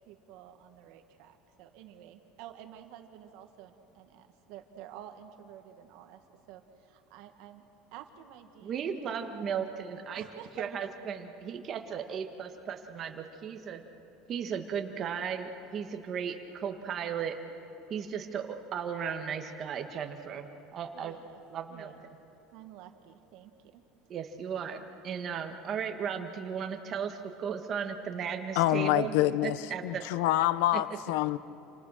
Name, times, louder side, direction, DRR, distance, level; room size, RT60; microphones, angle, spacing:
voice 1, 0.0-6.2 6.5-7.6 7.9-9.5 10.1-10.6 20.9-21.4 21.7-22.1 22.5-23.8, right 11 dB, 55° right, 5 dB, 1.7 m, -50 dB
voice 2, 8.6-10.2 10.6-13.8 14.3-17.4 17.9-21.1 21.5-21.9 24.1-29.1 29.4-30.0, right 7 dB, 30° right, 5 dB, 1.7 m, -36 dB
voice 3, 28.6-31.4, left 14 dB, 70° left, 15 dB, 0.8 m, -27 dB
28.5 x 27.5 x 6.6 m, 3.0 s
cardioid pair, 175°, 0 cm